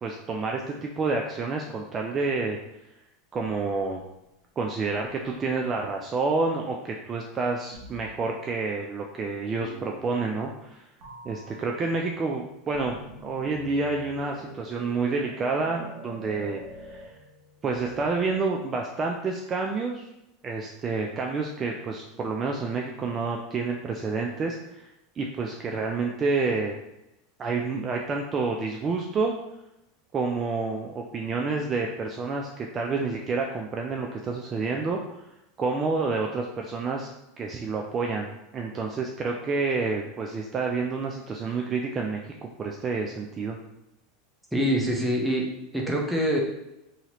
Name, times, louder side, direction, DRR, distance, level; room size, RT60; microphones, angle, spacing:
voice 1, 0.0-2.6 3.3-4.0 4.6-10.9 11.2-17.1 17.6-20.1 20.4-24.9 25.2-26.8 27.4-29.4 30.1-35.2 35.6-37.1 37.4-38.3 38.5-43.6, right 4 dB, 30° right, 1 dB, 0.3 m, -29 dB
sound 1, 4.1-4.2 4.9-6.0 7.7-8.3 9.6-10.7 11.0-18.4, right 2 dB, 60° right, 0.9 m, -47 dB
voice 2, 44.5-45.5 45.7-46.4, equal, 5° right, -2 dB, 0.7 m, -24 dB
2.8 x 2.8 x 2.9 m, 0.88 s
supercardioid pair, 115°, 0 cm